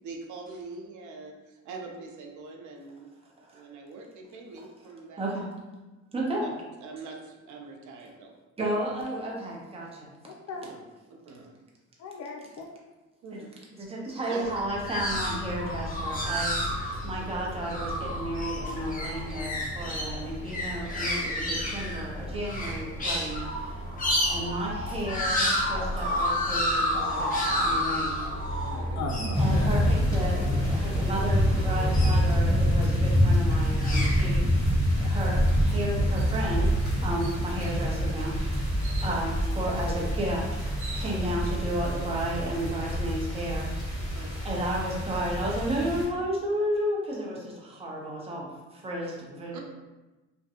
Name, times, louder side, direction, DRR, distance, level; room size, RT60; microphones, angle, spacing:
voice 1, 0.0-3.2 3.5-5.3 6.4-6.5 6.8-8.3 10.5-10.8 11.1-11.5 13.2-13.5 14.3-14.6 28.5-29.2 44.0-44.3 49.5-49.6, right 3 dB, 75° right, 1 dB, 0.6 m, -43 dB
voice 2, 6.1-6.5 8.6-10.1 13.3-13.4 13.8-16.6 17.0-23.7 24.3-28.4 29.4-34.7 35.0-36.7 37.0-40.6 40.9-44.1 44.4-49.6, right 1 dB, 20° right, -3 dB, 0.6 m, -33 dB
voice 3, 10.2-10.7 12.0-12.7 29.0-29.7, left 2 dB, 60° left, 1 dB, 0.6 m, -36 dB
sound 1, 14.4-32.6 33.5-34.2, left 1 dB, 25° left, 0.7 m, -30 dB
sound 2, 29.3-46.1, equal, 10° left, 1.4 m, -26 dB
sound 3, 36.2-36.4 36.8-36.9 37.2-37.7 38.8-39.1 40.3-40.4 40.6-41.5, right 3 dB, 45° right, 0.9 m, -43 dB
2.5 x 2.2 x 2.7 m, 1.1 s
cardioid pair, 90°, 30 cm